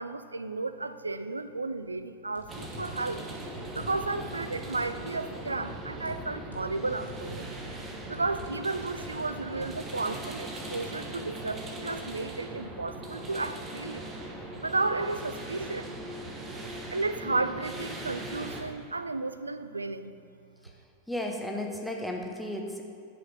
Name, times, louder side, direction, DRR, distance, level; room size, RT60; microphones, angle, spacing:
voice 1, 0.0-3.2 3.7-7.5 8.1-14.1 14.6-15.9 16.9-20.2, right 3 dB, 80° right, 12 dB, 0.4 m, -33 dB
sound 1, 2.4-3.1 3.5-4.2 4.6-5.0 5.5-6.8 7.1-7.8 8.1-8.6 8.8-9.7, equal, 80° left, 1.9 m, -46 dB
sound 2, 2.5-18.6, right 1 dB, 20° right, 1.2 m, -40 dB
voice 2, 21.1-22.8, left 1 dB, ahead, 1 dB, 0.9 m, -34 dB
11.0 x 5.1 x 5.8 m, 2.4 s
figure-of-eight pair, 90°, 0 cm